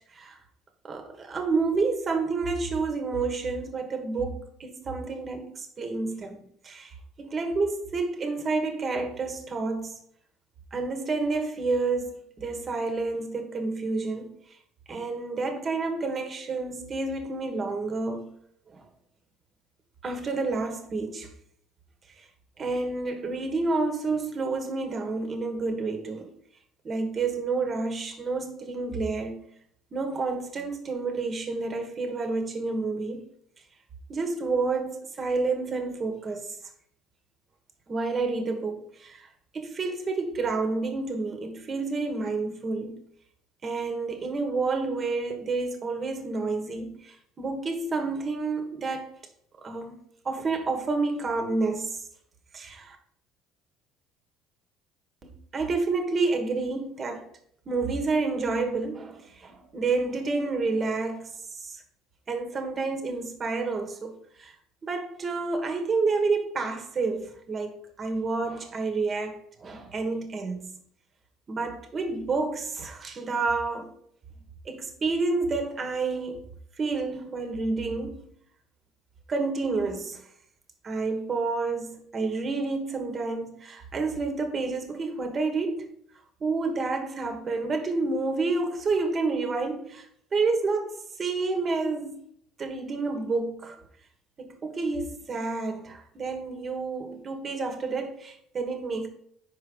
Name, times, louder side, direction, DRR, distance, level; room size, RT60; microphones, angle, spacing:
voice 1, 0.8-10.0 10.7-14.4 14.9-18.3 18.7-18.8 20.0-21.3 22.6-26.3 26.8-29.4 29.9-33.3 34.1-36.5 37.9-39.3 39.5-43.0 43.6-49.1 49.6-49.9 50.2-52.0 52.5-53.0 55.2-57.3 57.6-61.3 61.6-61.8 62.3-64.5 64.8-70.8 71.5-74.0 74.6-76.4 76.8-78.2 79.3-80.2 80.8-85.9 86.4-90.1 90.3-92.2 92.6-93.8 94.4-99.1, right 3 dB, 35° right, 1.4 m, -29 dB
5.3 x 4.8 x 5.4 m
supercardioid pair, 85°, 0 cm